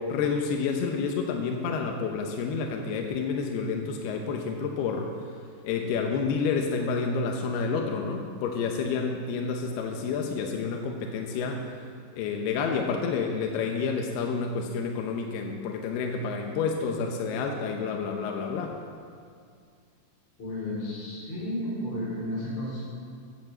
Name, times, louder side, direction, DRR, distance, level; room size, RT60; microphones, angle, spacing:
voice 1, 0.0-5.1 5.6-11.8 12.1-18.8, left 5 dB, 75° left, 2 dB, 2.6 m, -29 dB
voice 2, 20.4-22.8, left 1 dB, 40° left, -7 dB, 4.8 m, -32 dB
16.0 x 8.5 x 7.8 m, 2.2 s
omnidirectional pair, 5.4 m